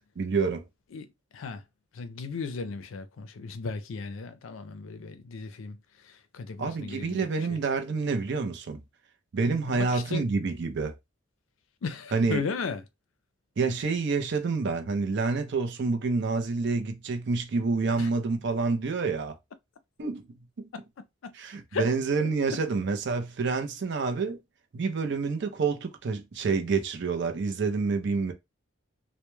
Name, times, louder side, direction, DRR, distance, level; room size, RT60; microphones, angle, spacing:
voice 1, 0.2-0.6 6.6-8.8 9.3-10.9 12.1-12.4 13.6-19.4 20.0-20.2 21.3-24.4 24.7-28.3, right 4 dB, 55° right, 0.5 m, -28 dB
voice 2, 0.9-1.6 1.9-5.8 6.0-7.6 9.7-10.2 11.8-12.8 18.0-18.1 20.7-20.8 21.2-21.3 21.7-21.9, left 4 dB, 70° left, 0.4 m, -36 dB
2.2 x 2.1 x 3.0 m
head